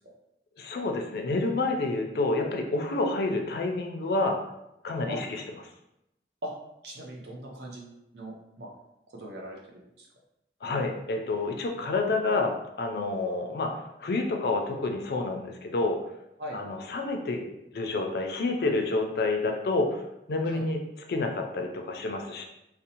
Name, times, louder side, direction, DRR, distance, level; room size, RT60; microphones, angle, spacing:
voice 1, 0.6-4.4 4.8-5.4 10.6-16.0 16.5-17.4 17.7-20.0 20.3-20.8 21.1-22.4, left 3 dB, 60° left, 3 dB, 0.4 m, -28 dB
voice 2, 6.8-8.7 9.1-9.6 10.0-10.1 16.4-16.6 20.5-20.7, equal, 70° right, 0 dB, 0.6 m, -39 dB
2.6 x 2.0 x 2.8 m, 0.85 s
head